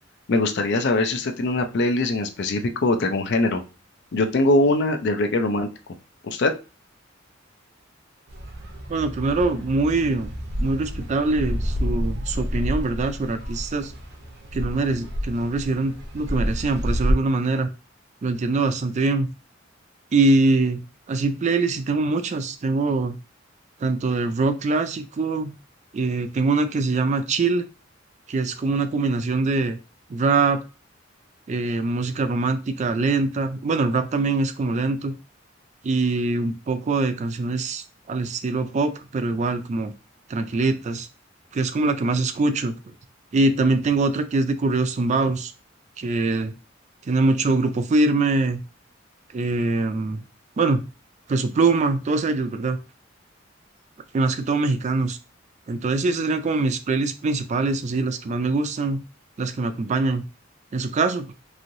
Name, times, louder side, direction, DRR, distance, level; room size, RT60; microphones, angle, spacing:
voice 1, 0.3-3.6 4.1-5.7 6.2-6.5, left 2 dB, 60° left, 7 dB, 0.5 m, -22 dB
sound 1, 8.3-17.1, equal, 60° right, 0.7 m, -29 dB
voice 2, 8.9-10.3 10.6-13.9 14.5-17.7 18.2-19.3 20.1-20.8 21.1-23.2 23.8-25.5 25.9-27.7 28.3-29.8 30.1-30.6 31.5-35.2 35.8-39.9 40.3-41.1 41.5-42.7 43.3-45.5 46.0-46.5 47.1-48.6 49.3-50.2 50.6-50.8 51.3-52.8 54.1-55.2 55.7-59.0 59.4-60.2 60.7-61.3, right 3 dB, 35° right, 9 dB, 0.3 m, -23 dB
3.1 x 2.7 x 2.6 m, 0.31 s
head